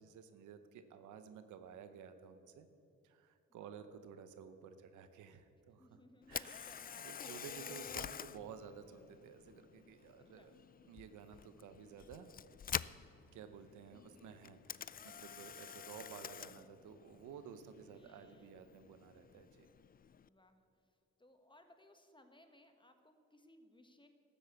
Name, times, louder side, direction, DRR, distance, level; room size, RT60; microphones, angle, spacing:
voice 1, 0.0-2.7 3.0-5.9 6.3-10.5 10.9-12.3 13.3-19.7, right 7 dB, 90° right, 10 dB, 0.9 m, -54 dB
voice 2, 5.8-7.1 10.2-10.6 17.9-18.6 20.1-24.1, left 1 dB, 15° left, 7 dB, 1.6 m, -65 dB
Camera, 6.2-20.3, left 8 dB, 30° left, 0.4 m, -48 dB
12.5 x 8.7 x 8.1 m, 2.6 s
cardioid pair, 65°, 29 cm